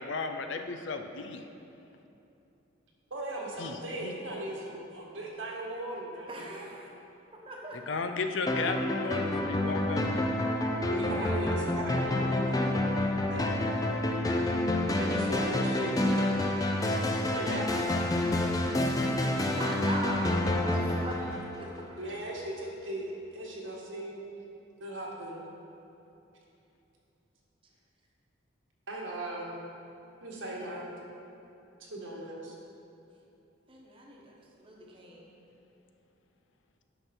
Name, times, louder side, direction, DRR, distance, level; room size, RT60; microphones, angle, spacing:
voice 1, 0.0-1.5 3.6-3.7 4.0-4.1 7.9-10.0, left 4 dB, 70° left, 7 dB, 0.6 m, -34 dB
voice 2, 3.1-6.7 10.9-12.7 13.0-13.5 15.0-16.4 17.2-17.8 22.0-24.2 24.8-25.4 28.9-29.6 30.2-31.0 31.9-32.5, right 1 dB, 80° right, -3 dB, 1.7 m, -38 dB
voice 3, 6.3-6.8 7.5-7.8 19.5-21.2 21.6-21.9 33.7-35.3, right 1 dB, 25° right, -2 dB, 1.1 m, -40 dB
sound 1, 8.5-22.0, left 1 dB, 20° left, 0.5 m, -28 dB
10.0 x 6.0 x 4.5 m, 2.9 s
head